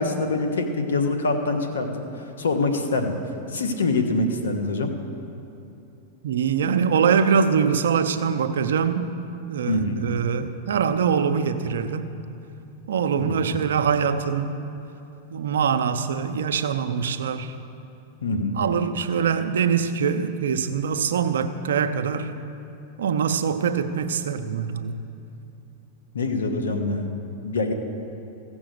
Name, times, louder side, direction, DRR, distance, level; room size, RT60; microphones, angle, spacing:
voice 1, 0.0-1.9 2.4-3.1 3.5-4.9 9.7-10.0 13.2-13.4 18.2-18.6 26.1-27.1 27.4-27.7, left 3 dB, 85° left, 6 dB, 1.3 m, -24 dB
voice 2, 6.2-9.1 9.5-12.0 12.9-14.6 15.3-17.5 18.6-22.3 23.0-25.0, right 6 dB, 80° right, 9 dB, 0.7 m, -23 dB
15.5 x 6.2 x 7.8 m, 2.9 s
hypercardioid pair, 115°, 0 cm